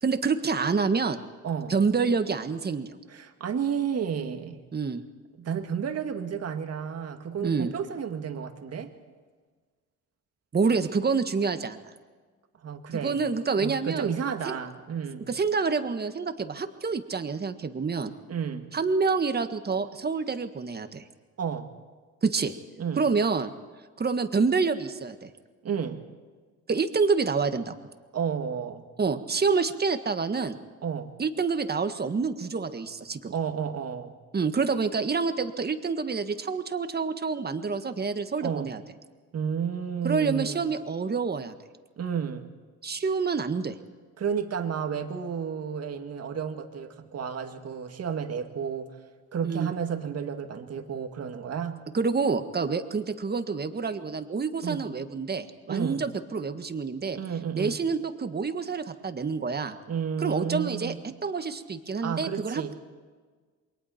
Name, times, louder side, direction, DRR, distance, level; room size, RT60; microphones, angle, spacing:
voice 1, 0.0-1.2 1.7-2.9 4.7-5.0 7.4-7.7 10.5-11.8 12.9-14.1 14.5-14.6 15.3-18.1 18.7-21.1 22.2-22.5 23.0-23.5 24.0-25.3 26.7-27.8 29.0-30.6 31.2-33.3 34.3-38.8 40.0-41.5 42.8-43.8 49.4-49.7 51.9-57.2 57.6-59.8 60.2-60.9 61.2-62.7, right 4 dB, 30° right, 8 dB, 1.6 m, -27 dB
voice 2, 3.1-4.6 5.4-8.9 12.6-13.2 13.6-15.3 18.3-18.7 21.4-21.7 22.8-23.0 25.6-26.0 28.1-28.8 30.8-31.1 33.3-34.2 38.4-38.7 39.3-40.7 42.0-42.5 44.2-49.0 49.3-51.8 54.6-54.8 55.7-56.1 57.1-57.8 59.9-61.0 62.0-62.7, right 7 dB, 55° right, 6 dB, 2.0 m, -31 dB
28.0 x 22.5 x 4.5 m, 1.5 s
cardioid pair, 90°, 30 cm